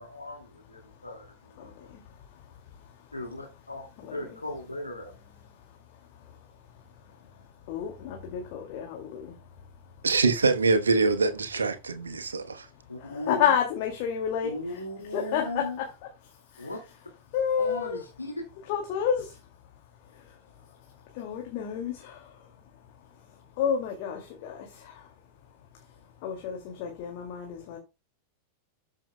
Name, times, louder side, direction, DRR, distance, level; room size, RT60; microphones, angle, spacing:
voice 1, 0.0-1.8 3.1-3.8 4.1-5.1 12.9-13.5 14.4-15.8 16.6-16.8 17.6-18.3, left 1 dB, 85° left, 2.2 m, -37 dB
voice 2, 1.5-3.1 4.0-4.4 5.1-6.6 7.3-10.1 12.1-15.8 16.2-16.8 17.3-18.0 18.7-27.8, left 8 dB, 45° left, 2.2 m, -33 dB
voice 3, 10.0-12.7, right 3 dB, 75° right, 1.0 m, -24 dB
13.5 x 6.3 x 2.2 m
figure-of-eight pair, 90°, 0 cm